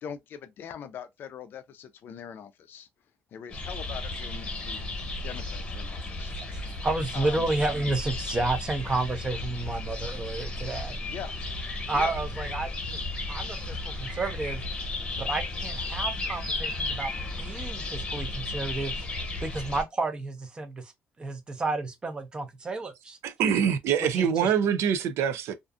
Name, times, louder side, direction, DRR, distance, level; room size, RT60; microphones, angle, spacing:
voice 1, 0.0-2.9 3.3-6.4 7.1-7.5 11.1-11.3 11.9-12.1 23.4-23.7, left 8 dB, 50° left, 0.4 m, -42 dB
sound 1, 3.5-19.8, left 2 dB, 25° left, 1.0 m, -34 dB
voice 2, 6.3-11.0 11.9-13.0 13.3-14.6 15.2-17.1 17.4-19.1 19.4-20.9 21.2-23.2 24.0-24.5, right 2 dB, 20° right, 0.5 m, -31 dB
voice 3, 23.2-25.5, right 8 dB, 75° right, 0.4 m, -25 dB
2.5 x 2.4 x 2.4 m
cardioid pair, 165°, 5 cm